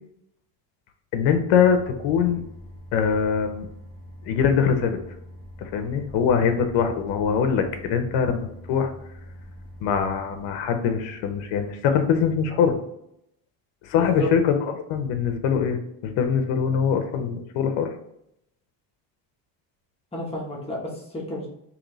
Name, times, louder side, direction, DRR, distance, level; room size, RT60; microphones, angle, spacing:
voice 1, 1.1-2.4 2.9-3.7 4.2-5.0 5.6-8.9 9.8-12.8 13.8-17.9, left 7 dB, 70° left, 6 dB, 0.7 m, -23 dB
sound 1, 1.7-12.3, equal, 80° right, 1.3 m, -44 dB
voice 2, 13.9-14.3 20.1-21.5, equal, 15° left, -3 dB, 0.9 m, -31 dB
3.9 x 2.9 x 3.0 m, 0.78 s
cardioid pair, 160°, 46 cm